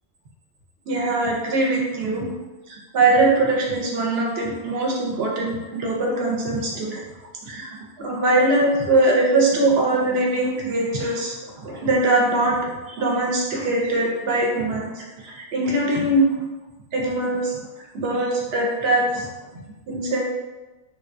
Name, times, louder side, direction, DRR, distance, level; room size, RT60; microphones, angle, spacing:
voice 1, 0.9-2.2 2.7-7.0 7.4-7.7 8.0-16.3 16.9-17.6 17.9-19.3 19.5-20.2, right 2 dB, 60° right, -2 dB, 0.9 m, -22 dB
3.4 x 2.2 x 2.5 m, 1.1 s
omnidirectional pair, 1.2 m